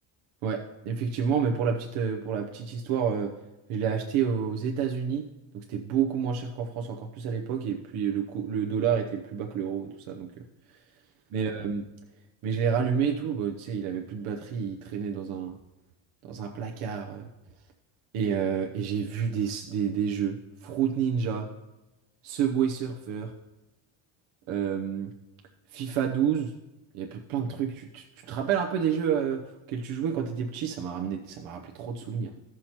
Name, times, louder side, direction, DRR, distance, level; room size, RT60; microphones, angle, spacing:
voice 1, 0.4-3.3 3.7-5.2 5.5-10.8 11.3-11.8 12.4-15.6 16.2-17.3 18.1-21.5 22.2-23.3 24.5-25.1 25.7-26.5 26.9-32.3, right 7 dB, 75° right, 1 dB, 1.0 m, -29 dB
15.5 x 6.1 x 3.0 m, 1.0 s
cardioid pair, 170°, 49 cm